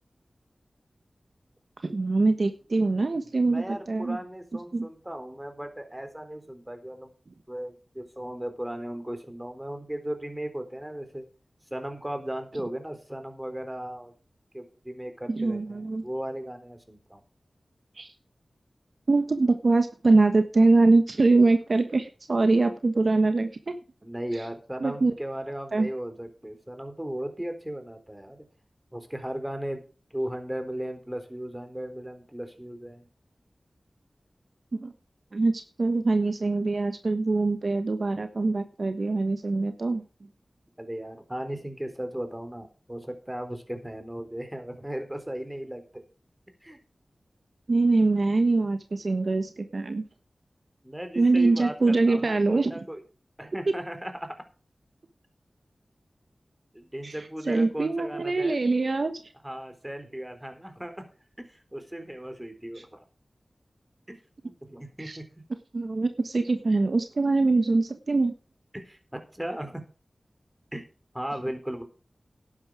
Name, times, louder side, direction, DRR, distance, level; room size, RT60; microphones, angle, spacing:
voice 1, 1.8-4.2 4.7-4.9 15.3-16.1 18.0-18.1 19.1-23.7 24.8-25.1 25.7-25.9 34.7-34.9 35.3-40.0 47.7-50.0 51.2-52.7 57.0-57.1 57.5-59.2 65.0-65.2 65.7-68.3, right 3 dB, 65° right, 8 dB, 1.2 m, -23 dB
voice 2, 3.3-7.1 7.5-11.2 11.7-14.1 14.5-17.2 24.0-28.5 28.9-29.8 30.1-33.1 40.8-46.0 46.6-46.8 50.8-53.0 53.4-54.5 56.7-58.6 59.4-61.1 61.5-63.0 64.1-64.2 64.4-65.4 68.7-69.9 70.7-70.8 71.1-71.8, right 1 dB, 10° right, 7 dB, 3.9 m, -36 dB
12.0 x 9.7 x 4.8 m, 0.36 s
cardioid pair, 50°, 0 cm